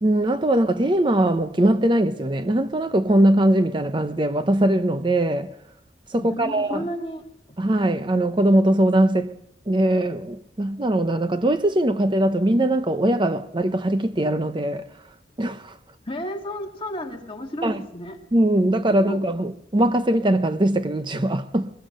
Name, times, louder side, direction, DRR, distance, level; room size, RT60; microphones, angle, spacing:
voice 1, 0.0-5.5 6.1-6.9 7.6-9.3 9.7-14.9 15.4-15.8 17.6-17.8 18.3-21.7, right 1 dB, 25° right, 0.8 m, -21 dB
voice 2, 6.2-7.2 16.1-18.2 19.1-19.2, equal, 30° left, 2.2 m, -32 dB
21.5 x 20.5 x 6.7 m
head